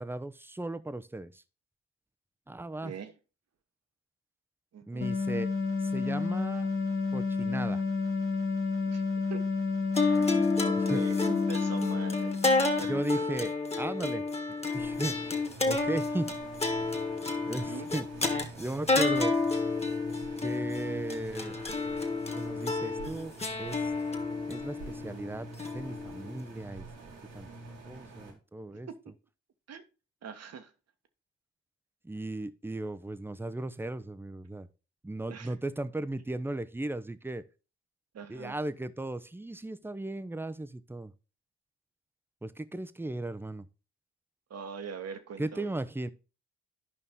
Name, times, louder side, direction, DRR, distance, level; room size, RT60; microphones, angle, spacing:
voice 1, 0.0-1.4 2.5-2.9 4.9-5.5 5.8-6.7 7.1-7.8 10.9-11.0 12.8-14.2 14.7-15.3 15.7-16.3 17.5-18.0 18.6-19.4 20.4-21.6 22.3-23.3 23.6-23.9 24.5-25.5 25.7-26.9 27.3-27.5 27.8-28.9 32.0-34.7 35.0-37.4 38.3-41.1 42.4-43.7 45.4-46.1, right 2 dB, 5° right, 0.7 m, -36 dB
voice 2, 2.8-3.1 4.7-5.1 8.9-9.0 9.3-9.4 10.2-13.2 17.5-17.9 28.7-29.1 29.7-29.8 30.2-30.7 35.3-35.6 38.1-38.6 44.5-45.7, right 7 dB, 55° right, 1.3 m, -43 dB
sound 1, 5.0-13.1, left 4 dB, 45° left, 1.7 m, -30 dB
sound 2, 10.0-26.4, left 3 dB, 20° left, 1.8 m, -30 dB
sound 3, 14.8-28.3, right 2 dB, 80° right, 2.4 m, -46 dB
11.0 x 5.4 x 3.6 m
hypercardioid pair, 45°, 31 cm